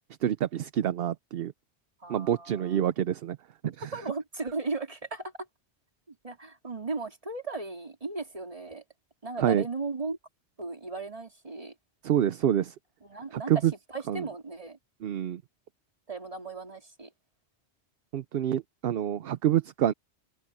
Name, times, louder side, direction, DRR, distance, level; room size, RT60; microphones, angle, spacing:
voice 1, 0.2-1.5 2.1-3.4 3.6-3.9 9.4-9.6 12.0-12.7 13.3-13.7 14.1-14.2 15.0-15.4 18.1-19.9, right 10 dB, 65° right, 0.8 m, -27 dB
voice 2, 2.0-2.8 3.9-5.3 6.1-8.8 9.2-10.2 10.6-11.7 13.0-13.5 13.9-14.8 16.1-17.1 19.1-19.3, right 3 dB, 30° right, 2.6 m, -36 dB
omnidirectional pair, 1.1 m